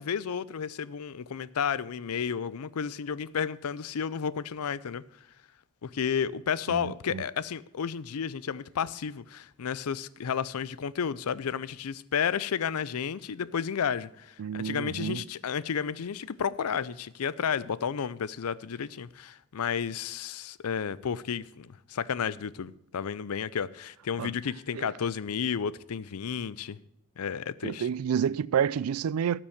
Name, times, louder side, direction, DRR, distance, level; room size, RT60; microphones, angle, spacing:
voice 1, 0.0-5.0 5.8-26.8 27.2-27.9, left 7 dB, 90° left, 0.5 m, -32 dB
voice 2, 6.7-7.2 14.4-15.2 24.2-24.3 24.7-24.9 27.6-29.4, right 8 dB, 75° right, 0.3 m, -29 dB
13.0 x 6.1 x 6.3 m
head